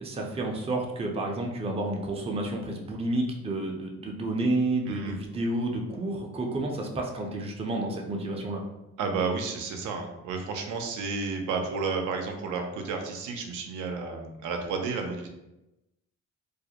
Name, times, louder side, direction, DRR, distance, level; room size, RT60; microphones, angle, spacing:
voice 1, 0.0-8.6, right 2 dB, 20° right, 1 dB, 0.4 m, -30 dB
voice 2, 4.8-5.2 9.0-15.3, right 4 dB, 80° right, 3 dB, 0.5 m, -31 dB
2.4 x 2.0 x 2.8 m, 0.93 s
cardioid pair, 90°, 30 cm